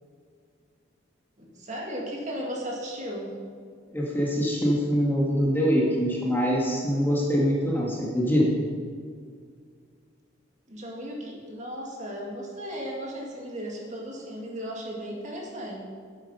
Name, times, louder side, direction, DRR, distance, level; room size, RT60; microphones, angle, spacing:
voice 1, 1.4-3.3 10.7-15.8, equal, 40° right, -2 dB, 2.0 m, -36 dB
voice 2, 3.9-8.6, equal, 10° left, -4 dB, 1.7 m, -24 dB
9.0 x 8.4 x 5.5 m, 2.1 s
head